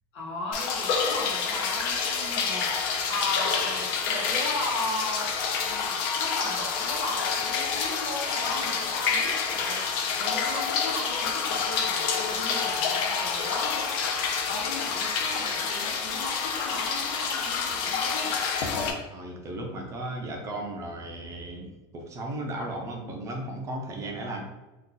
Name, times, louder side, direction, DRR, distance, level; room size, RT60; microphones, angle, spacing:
voice 1, 0.1-5.4 5.6-18.4, left 2 dB, 80° left, -2 dB, 1.2 m, -36 dB
sound 1, 0.5-18.9, left 5 dB, 55° left, 0.5 m, -28 dB
voice 2, 19.1-24.4, right 1 dB, 20° right, 1 dB, 0.4 m, -35 dB
2.7 x 2.3 x 3.7 m, 1.1 s
supercardioid pair, 160°, 13 cm